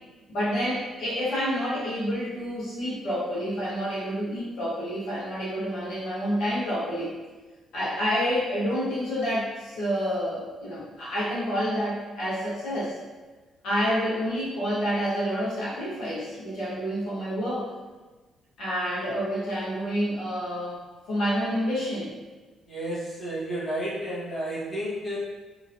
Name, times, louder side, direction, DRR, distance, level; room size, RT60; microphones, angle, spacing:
voice 1, 0.3-7.1 7.7-12.9 13.6-17.7 18.6-22.1, equal, 80° left, -9 dB, 1.2 m, -28 dB
voice 2, 22.7-25.2, right 1 dB, 25° left, -10 dB, 1.1 m, -31 dB
2.9 x 2.6 x 2.6 m, 1.2 s
cardioid pair, 120°, 0 cm